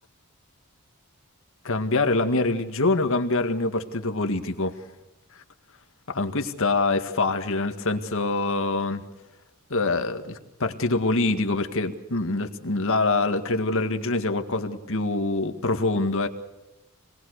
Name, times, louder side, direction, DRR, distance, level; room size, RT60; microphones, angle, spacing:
voice 1, 1.6-4.8 6.1-9.0 9.7-16.3, left 2 dB, 65° left, 7 dB, 1.9 m, -25 dB
26.0 x 20.0 x 6.6 m, 0.96 s
head